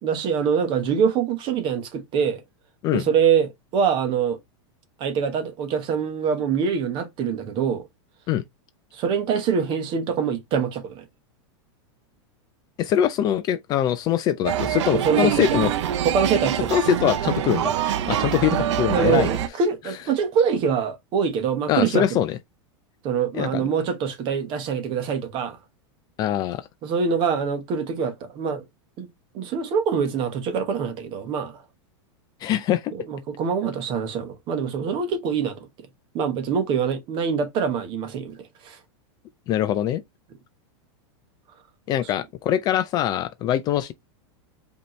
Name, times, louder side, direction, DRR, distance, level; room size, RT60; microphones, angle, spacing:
voice 1, 0.0-2.4 2.9-4.4 5.0-7.9 8.9-11.0 14.9-15.6 16.0-16.8 18.9-22.0 23.0-25.6 26.8-28.6 29.0-29.1 29.3-31.6 32.9-35.7 36.1-38.8, right 6 dB, 35° right, 1.1 m, -24 dB
voice 2, 12.8-15.7 16.7-19.3 21.7-22.4 23.3-23.6 26.2-26.7 32.4-32.9 39.5-40.0 41.9-43.9, left 11 dB, 25° left, 0.4 m, -23 dB
sound 1, 14.4-19.5, right 10 dB, 80° right, 0.6 m, -24 dB
5.1 x 2.8 x 3.1 m
supercardioid pair, 155°, 15 cm